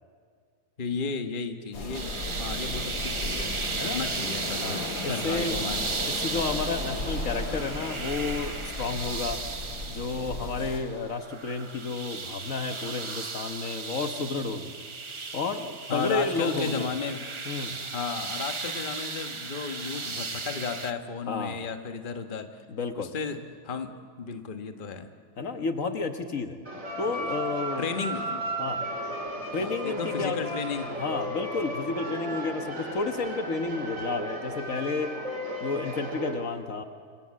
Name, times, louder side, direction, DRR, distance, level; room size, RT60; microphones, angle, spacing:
voice 1, 0.8-2.1 2.4-5.8 15.9-17.2 17.9-22.6 22.9-23.4 23.6-25.1 27.8-28.7 29.6-30.9, left 5 dB, 35° left, 6 dB, 1.3 m, -34 dB
sound 1, 1.7-10.8, left 2 dB, 85° left, 4.2 m, -35 dB
sound 2, 1.9-20.9, right 4 dB, 30° right, 0.6 m, -36 dB
voice 2, 4.6-5.6 6.0-9.4 9.9-14.8 15.3-16.9 17.4-17.8 21.3-21.7 22.7-23.1 25.4-26.6 27.0-27.9 28.6-28.9 29.5-30.4 31.0-35.1 35.6-36.8, left 4 dB, 60° left, 7 dB, 1.6 m, -31 dB
sound 3, 26.7-36.3, right 1 dB, 55° right, 4.3 m, -34 dB
27.0 x 25.5 x 7.6 m, 2.1 s
omnidirectional pair, 1.6 m